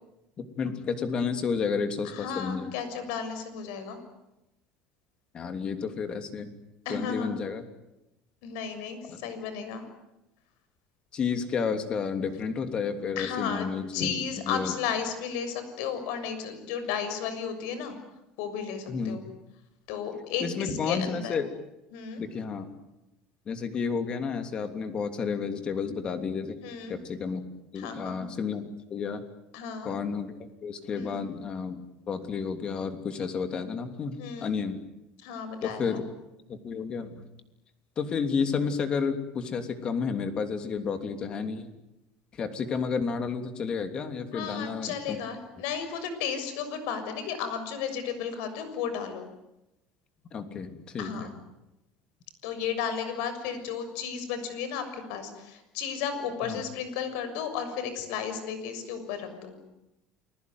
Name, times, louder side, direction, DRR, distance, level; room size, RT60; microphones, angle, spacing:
voice 1, 0.4-2.7 5.3-6.5 6.9-7.6 9.1-9.2 11.1-14.1 14.4-14.8 18.9-19.2 20.4-21.5 22.2-22.7 23.5-26.6 26.9-27.4 27.7-29.2 29.8-31.8 32.1-34.8 35.6-36.1 36.5-37.2 38.0-41.7 42.4-45.2 50.3-51.3 56.4-56.6, left 5 dB, 30° left, 8 dB, 3.1 m, -31 dB
voice 2, 2.0-4.0 6.9-7.3 8.4-9.8 13.2-13.7 13.9-17.9 18.4-19.2 19.9-21.4 21.9-22.2 26.6-27.0 27.8-28.3 29.5-29.9 30.9-31.2 34.2-34.5 35.2-36.0 44.3-49.3 51.0-51.3 52.4-59.5, left 7 dB, 80° left, 9 dB, 6.7 m, -34 dB
29.0 x 21.0 x 9.6 m, 0.91 s
cardioid pair, 150°, 3 cm